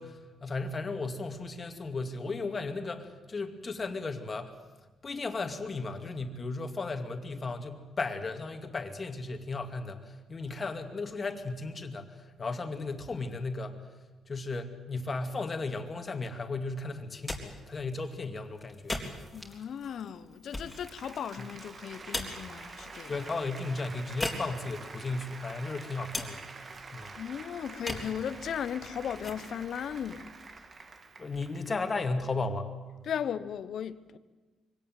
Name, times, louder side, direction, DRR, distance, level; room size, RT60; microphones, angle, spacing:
voice 1, 0.0-4.6 5.0-13.8 14.3-19.0 23.1-26.4 26.9-27.1 31.2-32.7, left 3 dB, 35° left, 2.4 m, -35 dB
sound 1, 17.1-30.9, left 1 dB, 10° left, 3.9 m, -42 dB
voice 2, 19.3-23.2 27.2-30.3 33.0-34.2, left 8 dB, 65° left, 1.1 m, -36 dB
Applause, 20.3-31.9, right 4 dB, 40° right, 1.9 m, -47 dB
23.5 x 17.5 x 9.3 m
cardioid pair, 90°, 0 cm